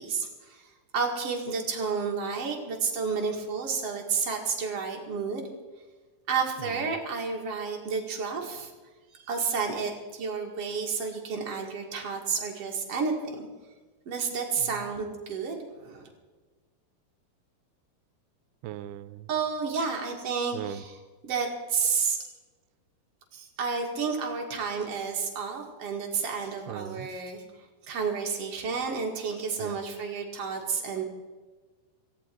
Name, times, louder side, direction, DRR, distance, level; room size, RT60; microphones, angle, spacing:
voice 1, 0.0-5.5 6.3-8.7 9.1-13.5 14.1-16.1 19.3-22.2 23.3-31.0, right 5 dB, 45° right, 1 dB, 2.6 m, -31 dB
voice 2, 18.6-19.3 20.5-20.8 26.7-27.1 29.6-29.8, right 12 dB, 85° right, 15 dB, 2.7 m, -38 dB
17.5 x 15.5 x 4.6 m, 1.3 s
omnidirectional pair, 4.5 m